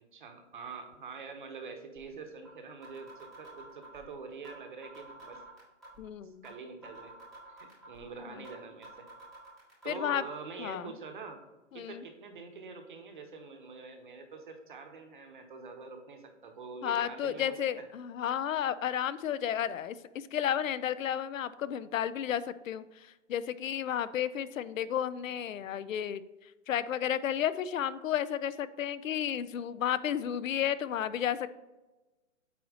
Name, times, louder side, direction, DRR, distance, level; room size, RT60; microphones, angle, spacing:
voice 1, 0.1-5.4 6.2-7.1 7.5-9.1 9.8-11.4 11.7-17.9, right 4 dB, 40° right, 6 dB, 0.9 m, -45 dB
sound 1, 2.0-2.1 2.4-2.5 2.8-4.0 4.4-4.6 4.8-6.0 6.4-6.5 6.8-8.0 8.4-8.6 8.8-9.9, right 2 dB, ahead, 0.7 m, -50 dB
voice 2, 6.0-6.4 8.4-8.5 9.9-10.2 10.6-10.9 11.7-12.0 16.8-26.2 26.7-31.6, left 9 dB, 85° left, 16 dB, 0.6 m, -32 dB
8.3 x 2.9 x 4.9 m, 1.1 s
hypercardioid pair, 170°, 38 cm